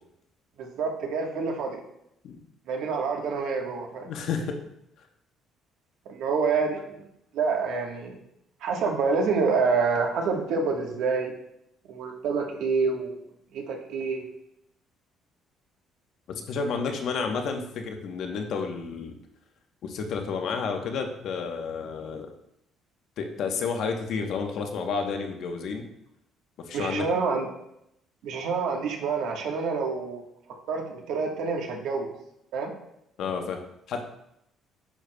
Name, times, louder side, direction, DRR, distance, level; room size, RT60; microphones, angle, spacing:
voice 1, 0.6-1.8 2.7-4.1 6.1-6.9 7.3-8.2 8.6-11.3 11.9-13.2 13.5-14.2 26.7-27.5 28.2-30.2 30.7-32.1 32.5-32.7, right 4 dB, 70° right, 1 dB, 1.2 m, -27 dB
voice 2, 4.1-4.6 16.3-19.1 19.8-22.3 23.2-25.9 26.6-27.0 33.2-33.6 33.9-34.0, left 5 dB, 55° left, 4 dB, 0.9 m, -31 dB
9.9 x 6.4 x 2.2 m, 0.79 s
cardioid pair, 175°, 0 cm